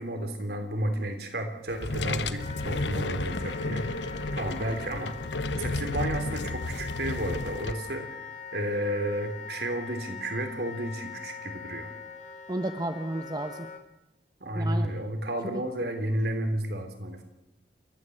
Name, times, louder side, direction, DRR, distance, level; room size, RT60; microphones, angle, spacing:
voice 1, 0.0-5.2 5.5-8.2 8.5-11.9 14.4-17.2, right 1 dB, 60° right, 6 dB, 3.3 m, -32 dB
sound 1, 1.7-7.7, left 2 dB, 80° left, 1.1 m, -32 dB
Wind instrument woodwind instrument, 2.4-13.8, left 6 dB, 40° left, 2.8 m, -42 dB
voice 2, 12.5-13.7 14.5-14.9 15.5-15.6, right 1 dB, 20° right, 7 dB, 1.0 m, -32 dB
29.0 x 13.5 x 8.0 m, 0.95 s
head